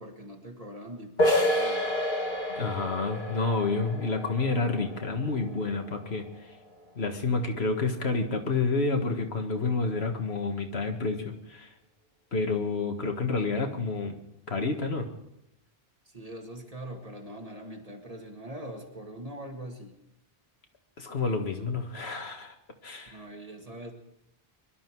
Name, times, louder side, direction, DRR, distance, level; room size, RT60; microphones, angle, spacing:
voice 1, 0.0-1.9 16.1-20.0 23.1-23.9, right 1 dB, 35° right, 2 dB, 2.1 m, -42 dB
sound 1, 1.2-6.7, equal, 50° left, 1.7 m, -30 dB
voice 2, 2.6-6.3 7.0-11.7 12.3-14.1 14.5-15.1 21.0-22.5 22.8-23.2, left 3 dB, 85° left, 4 dB, 1.9 m, -29 dB
24.0 x 12.0 x 4.7 m, 0.84 s
omnidirectional pair, 1.0 m